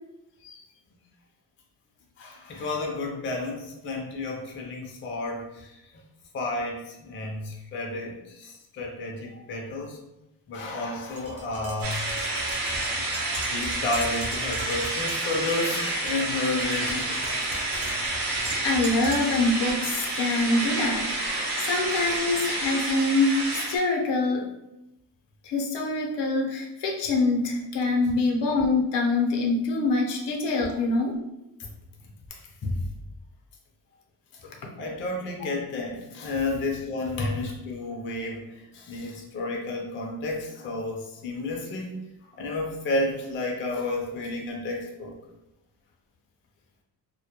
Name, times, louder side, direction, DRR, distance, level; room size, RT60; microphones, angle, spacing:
voice 1, 2.2-6.0 6.3-10.0 10.5-12.0 13.5-17.4 30.7-30.8 32.3-32.8 34.8-42.0 42.4-45.1, left 2 dB, 30° left, -1 dB, 0.4 m, -31 dB
Tap, 11.2-19.4, right 2 dB, 35° right, 0.5 m, -39 dB
sound 1, 11.8-23.8, right 2 dB, 75° right, 0.8 m, -29 dB
voice 2, 18.6-24.5 25.4-31.2, left 2 dB, 80° left, 0 dB, 0.7 m, -25 dB
2.2 x 2.1 x 2.8 m, 0.91 s
cardioid pair, 145°, 41 cm